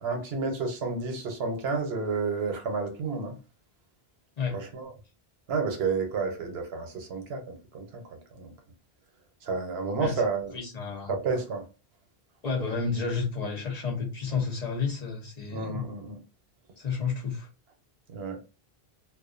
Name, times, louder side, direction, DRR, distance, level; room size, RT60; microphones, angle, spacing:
voice 1, 0.0-3.3 4.5-4.9 5.5-8.0 8.3-8.5 9.4-10.5 11.1-11.6 15.5-16.2 18.1-18.4, right 4 dB, 80° right, 0.9 m, -30 dB
voice 2, 10.5-11.1 12.4-15.8 16.8-17.5, left 5 dB, 45° left, 0.7 m, -31 dB
2.3 x 2.2 x 2.4 m
omnidirectional pair, 1.0 m